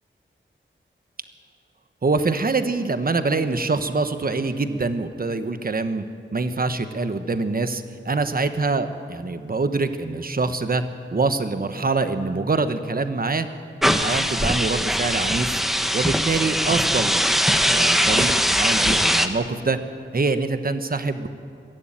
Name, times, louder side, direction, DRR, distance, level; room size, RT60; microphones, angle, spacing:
voice 1, 2.0-6.0 6.3-10.8 11.1-13.5 13.9-15.5 15.9-19.8 20.1-21.3, right 3 dB, 45° right, 9 dB, 1.4 m, -25 dB
sound 1, 13.8-19.3, equal, ahead, 1.4 m, -21 dB
22.5 x 15.5 x 9.1 m, 2.4 s
wide cardioid pair, 80°, 20 cm